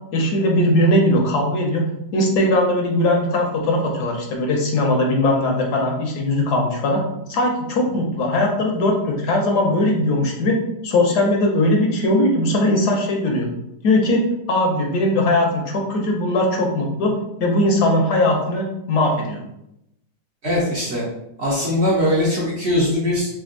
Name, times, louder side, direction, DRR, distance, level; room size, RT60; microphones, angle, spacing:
voice 1, 0.1-7.0 7.3-10.6 10.8-13.5 13.8-17.1 17.4-19.4, left 1 dB, 70° left, 0 dB, 1.3 m, -19 dB
voice 2, 20.4-21.0 21.4-23.4, left 1 dB, 45° right, -6 dB, 0.9 m, -21 dB
3.4 x 2.5 x 3.7 m, 0.81 s
omnidirectional pair, 1.9 m